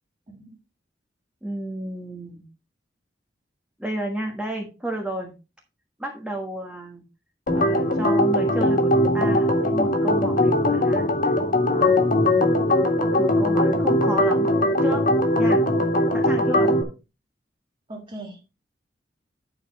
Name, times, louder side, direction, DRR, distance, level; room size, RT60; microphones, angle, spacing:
voice 1, 0.3-0.6 16.6-16.8 17.9-18.4, right 1 dB, 30° right, -1 dB, 1.8 m, -38 dB
voice 2, 1.4-2.4 3.8-5.3 6.0-7.0 7.5-11.3 11.7-12.7 13.2-15.1 15.4-15.7 16.1-16.7, right 1 dB, 5° right, 0 dB, 1.4 m, -32 dB
Organ, 7.5-16.8, left 1 dB, 50° left, 1.8 m, -20 dB
9.4 x 6.7 x 4.1 m, 0.30 s
head